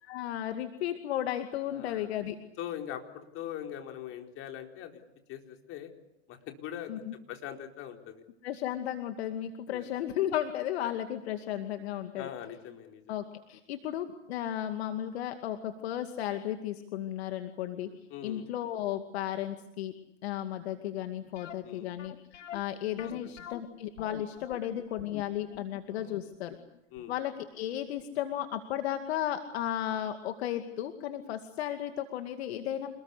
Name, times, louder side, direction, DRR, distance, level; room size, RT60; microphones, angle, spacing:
voice 1, 0.0-2.4 6.9-7.1 8.4-12.3 13.1-17.9 18.2-19.9 20.2-26.6 27.1-32.9, left 11 dB, 60° left, 7 dB, 2.4 m, -34 dB
voice 2, 1.7-2.1 2.6-5.0 5.3-5.9 6.3-8.2 9.7-9.8 12.2-13.1 18.1-18.5 21.6-21.9 23.2-23.3 25.9-26.1 26.9-27.1, left 10 dB, 35° left, 4 dB, 4.2 m, -42 dB
sound 1, 21.4-28.2 28.5-28.6 29.2-29.3 29.6-29.7, left 9 dB, 80° left, 2.1 m, -47 dB
28.0 x 20.5 x 8.4 m, 0.87 s
hypercardioid pair, 125°, 37 cm